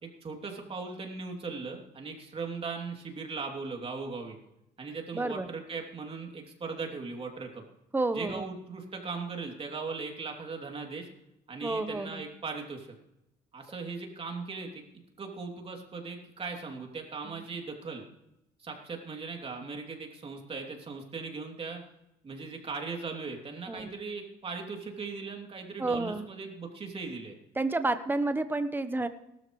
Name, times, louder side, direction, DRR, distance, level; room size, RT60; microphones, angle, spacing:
voice 1, 0.0-4.4 4.8-7.6 8.1-11.1 11.5-12.9 13.5-14.8 15.2-18.0 18.6-21.8 22.2-27.4, right 4 dB, 35° right, 2 dB, 3.0 m, -38 dB
voice 2, 5.1-5.5 7.9-8.5 11.6-12.2 17.2-17.5 23.7-23.9 25.8-26.3 27.6-29.1, right 2 dB, 10° right, 10 dB, 1.0 m, -30 dB
18.0 x 13.0 x 3.2 m, 0.85 s
cardioid pair, 110°, 17 cm